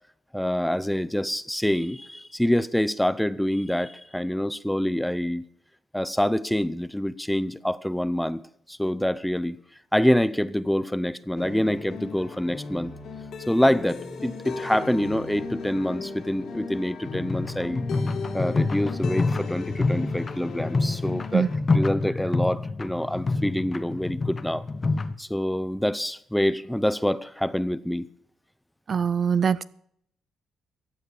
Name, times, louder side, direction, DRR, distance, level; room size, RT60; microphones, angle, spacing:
voice 1, 0.3-5.4 5.9-8.4 8.7-9.6 9.9-12.9 13.5-17.8 18.3-24.6 25.2-28.1, left 1 dB, 5° left, 0.7 m, -26 dB
sound 1, 11.4-21.6, left 4 dB, 65° left, 2.9 m, -37 dB
sound 2, 17.0-25.1, left 3 dB, 30° left, 1.1 m, -27 dB
voice 2, 28.9-29.6, right 7 dB, 45° right, 0.5 m, -22 dB
15.0 x 9.0 x 7.1 m
cardioid pair, 90°, 0 cm